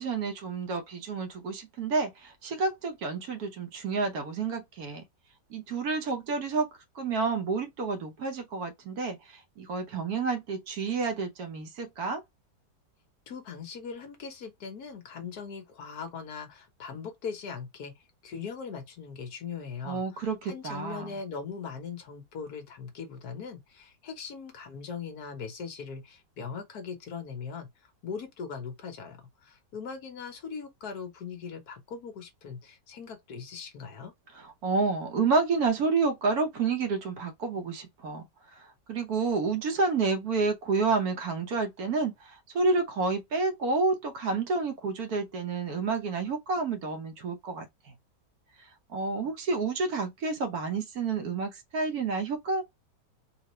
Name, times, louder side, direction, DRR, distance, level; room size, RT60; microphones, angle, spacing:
voice 1, 0.0-5.0 5.5-6.7 6.9-12.2 19.8-21.1 34.4-38.3 38.5-47.9 48.9-52.6, right 4 dB, 65° right, 1.3 m, -29 dB
voice 2, 13.3-34.1, left 6 dB, 65° left, 1.4 m, -40 dB
3.8 x 2.6 x 3.0 m
omnidirectional pair, 1.9 m